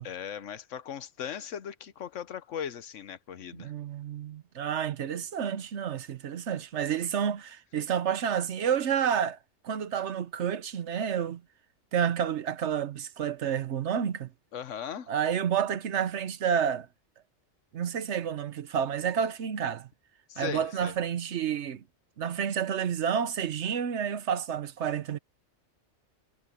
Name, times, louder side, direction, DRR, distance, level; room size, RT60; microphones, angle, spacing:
voice 1, 0.0-3.7 14.5-15.1 20.3-20.9, left 8 dB, 75° left, 1.2 m, -38 dB
voice 2, 3.6-9.4 9.6-11.4 11.9-14.3 15.1-16.9 17.7-19.9 20.4-21.8 22.2-25.2, right 8 dB, 70° right, 1.1 m, -30 dB
omnidirectional pair, 1.3 m